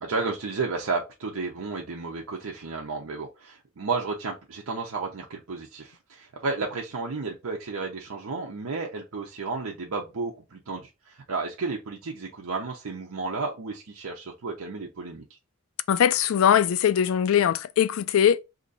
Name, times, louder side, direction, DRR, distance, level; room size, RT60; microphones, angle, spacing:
voice 1, 0.0-15.3, right 4 dB, 80° right, 0.7 m, -32 dB
voice 2, 15.9-18.4, left 9 dB, 75° left, 0.3 m, -21 dB
2.8 x 2.6 x 4.0 m
head